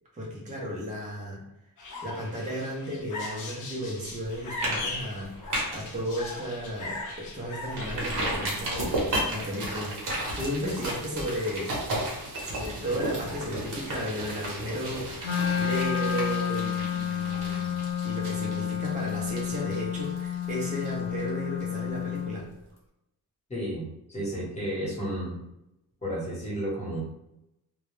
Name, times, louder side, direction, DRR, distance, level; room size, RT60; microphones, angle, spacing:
voice 1, 0.1-1.4 2.0-5.3 5.7-11.8 12.4-22.5, equal, 20° right, -4 dB, 0.5 m, -34 dB
sound 1, 1.8-8.0, left 2 dB, 55° left, 0.5 m, -39 dB
sound 2, 4.0-4.3 4.6-4.8 5.1-5.9 6.3-6.4 6.8-6.9 7.7-21.3 21.6-21.7, right 1 dB, 55° right, 0.9 m, -33 dB
Wind instrument woodwind instrument, 15.2-22.4, left 8 dB, 90° left, 0.7 m, -30 dB
voice 2, 23.5-25.3 26.0-27.0, right 1 dB, 15° left, -6 dB, 0.9 m, -32 dB
2.2 x 2.0 x 3.0 m, 0.87 s
wide cardioid pair, 180°, 38 cm